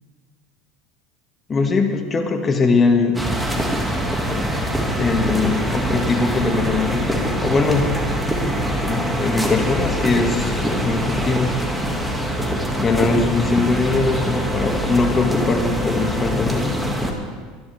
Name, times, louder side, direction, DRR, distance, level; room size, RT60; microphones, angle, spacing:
voice 1, 1.5-3.2 5.0-7.9 8.8-11.6 12.8-16.8, left 3 dB, 25° left, 4 dB, 2.0 m, -21 dB
sound 1, 3.1-17.1, equal, 5° right, 2.2 m, -23 dB
23.5 x 11.0 x 3.5 m, 1.5 s
supercardioid pair, 100°, 0 cm